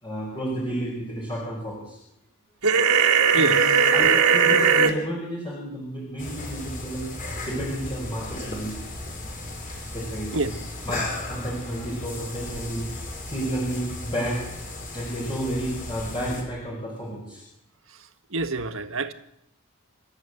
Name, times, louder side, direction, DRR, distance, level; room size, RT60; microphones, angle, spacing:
voice 1, 0.0-2.0 3.3-9.0 9.9-11.0 11.3-14.5 14.9-17.4, equal, 20° left, 5.4 m, -31 dB
sound 1, 2.6-4.9, right 6 dB, 80° right, 3.2 m, -18 dB
sound 2, 6.2-16.4, left 2 dB, 40° left, 6.0 m, -36 dB
voice 2, 18.3-19.1, right 3 dB, 60° right, 1.6 m, -26 dB
28.0 x 14.0 x 8.0 m
head